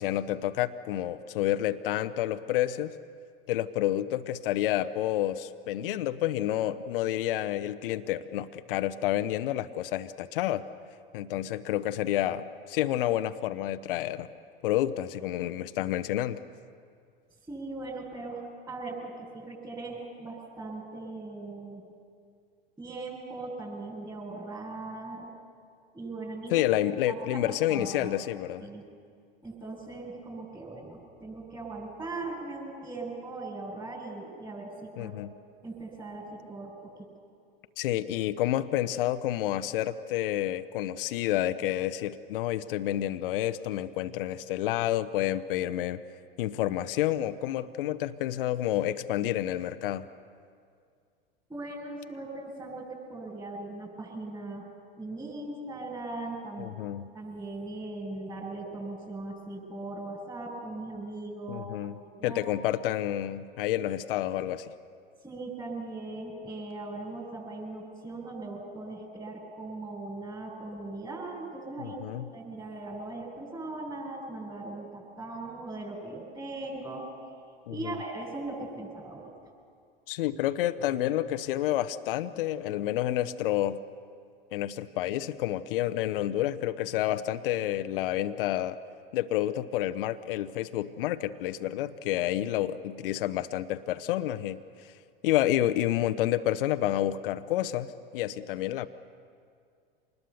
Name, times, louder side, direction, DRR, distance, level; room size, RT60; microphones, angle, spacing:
voice 1, 0.0-2.9 3.5-10.6 11.1-14.3 14.6-16.4 26.5-28.7 35.0-35.3 37.8-46.0 46.4-50.0 56.6-57.1 61.5-61.9 62.2-64.7 71.8-72.2 77.7-78.0 80.1-83.8 84.5-88.8 89.1-94.6 95.2-97.9 98.1-98.9, left 13 dB, 65° left, 11 dB, 0.8 m, -29 dB
voice 2, 17.5-21.9 22.8-25.3 25.9-26.7 27.1-28.1 28.6-28.9 29.4-35.1 35.6-36.9 51.5-54.7 55.0-56.7 57.1-61.7 62.1-62.5 65.2-71.9 72.3-77.1 77.7-79.3, right 2 dB, 10° right, -7 dB, 6.9 m, -39 dB
26.5 x 20.0 x 7.0 m, 2.2 s
hypercardioid pair, 90°, 30 cm